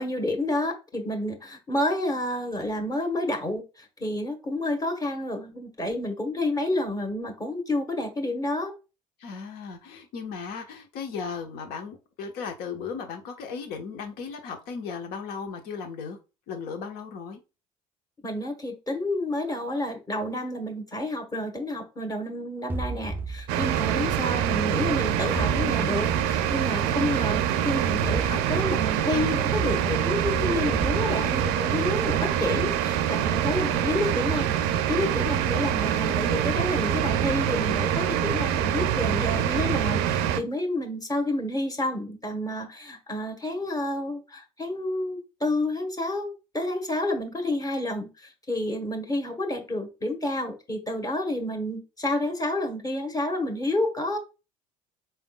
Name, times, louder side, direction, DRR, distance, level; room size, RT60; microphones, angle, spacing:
voice 1, 0.0-8.7 18.2-54.2, left 1 dB, 20° left, 4 dB, 1.3 m, -29 dB
voice 2, 9.2-16.2 16.5-17.4 39.0-39.2, left 5 dB, 60° left, 5 dB, 1.1 m, -36 dB
sound 1, 22.7-24.8 25.3-27.2 27.8-32.9, right 2 dB, 10° right, 0.5 m, -36 dB
sound 2, 23.5-40.4, right 10 dB, 65° right, 0.5 m, -25 dB
4.3 x 3.5 x 2.3 m, 0.28 s
hypercardioid pair, 60°, 17 cm